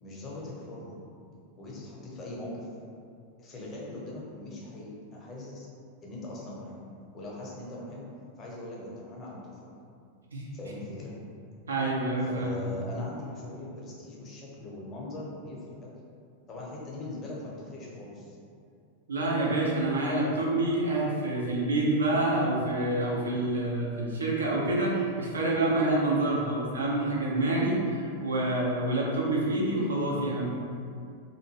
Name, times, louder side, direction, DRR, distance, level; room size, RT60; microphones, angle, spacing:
voice 1, 0.0-1.0 1.6-2.7 3.4-5.7 6.0-6.8 7.1-8.1 8.4-9.7 10.5-11.1 12.3-15.9 16.5-18.4, left 1 dB, 25° left, -4 dB, 0.7 m, -41 dB
voice 2, 11.7-12.6 19.1-30.5, right 2 dB, 70° right, -4 dB, 0.6 m, -27 dB
2.7 x 2.5 x 2.9 m, 2.4 s
figure-of-eight pair, 90°, 0 cm